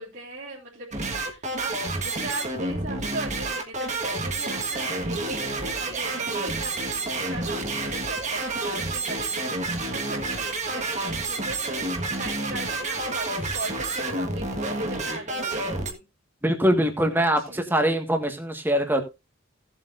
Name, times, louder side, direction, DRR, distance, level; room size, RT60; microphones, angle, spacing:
voice 1, 0.0-11.9 12.2-16.0 17.5-17.6, right 2 dB, 50° right, 3.4 m, -38 dB
sound 1, 0.9-15.9, right 2 dB, 35° right, 1.7 m, -29 dB
voice 2, 16.4-19.0, equal, 10° right, 1.7 m, -23 dB
17.0 x 7.7 x 2.6 m
head